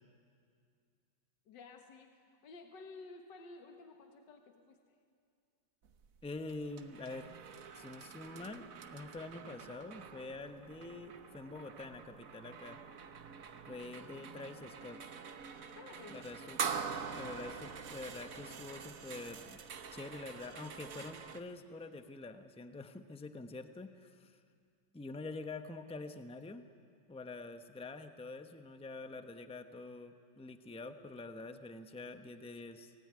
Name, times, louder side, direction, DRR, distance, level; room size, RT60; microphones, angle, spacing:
voice 1, 1.5-4.8 15.8-16.3, left 3 dB, 65° left, 5 dB, 2.1 m, -53 dB
sound 1, 5.8-21.4, right 6 dB, 50° right, 1.3 m, -45 dB
voice 2, 6.2-7.3 7.7-12.8 13.7-15.0 16.1-16.6 17.1-19.6 19.9-24.4 24.9-26.7 27.1-32.9, left 3 dB, 10° left, 8 dB, 0.3 m, -46 dB
26.5 x 19.0 x 9.7 m, 2.3 s
omnidirectional pair, 2.1 m